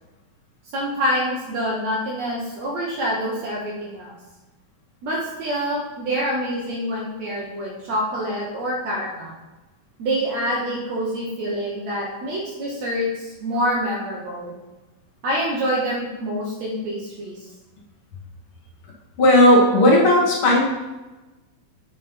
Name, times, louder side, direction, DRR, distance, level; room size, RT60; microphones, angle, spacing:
voice 1, 0.7-4.2 5.0-9.4 10.0-14.5 15.2-17.5, equal, 65° right, -4 dB, 2.3 m, -26 dB
voice 2, 19.2-20.6, left 1 dB, 50° left, -3 dB, 2.1 m, -14 dB
8.6 x 5.2 x 5.3 m, 1.1 s
omnidirectional pair, 3.5 m